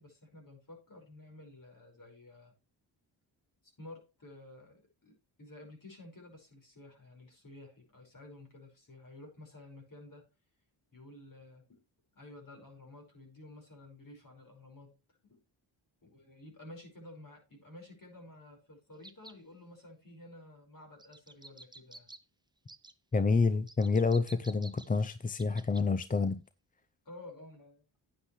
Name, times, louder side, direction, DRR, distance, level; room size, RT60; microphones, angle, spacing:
voice 1, 0.0-2.5 3.6-10.2 10.9-11.8 12.1-15.0 15.2-15.4 16.0-22.1 27.1-27.8, left 2 dB, 45° left, 5.2 m, -52 dB
sound 1, 19.0-19.4 21.0-22.2 22.7-22.9 23.7-25.9 26.2-26.3, right 2 dB, 10° right, 0.9 m, -52 dB
voice 2, 23.1-26.4, left 4 dB, 20° left, 0.5 m, -28 dB
9.8 x 8.7 x 3.2 m
cardioid pair, 70°, 46 cm